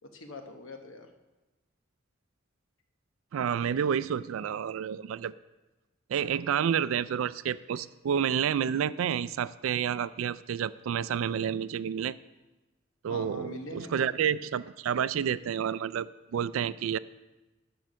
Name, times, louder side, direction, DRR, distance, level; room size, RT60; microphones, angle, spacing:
voice 1, 0.0-1.1 13.1-14.1, left 2 dB, 75° left, 5 dB, 1.0 m, -42 dB
voice 2, 3.3-5.3 6.1-12.2 13.0-17.0, right 8 dB, 85° right, 17 dB, 0.3 m, -29 dB
11.0 x 4.6 x 6.3 m, 1.1 s
head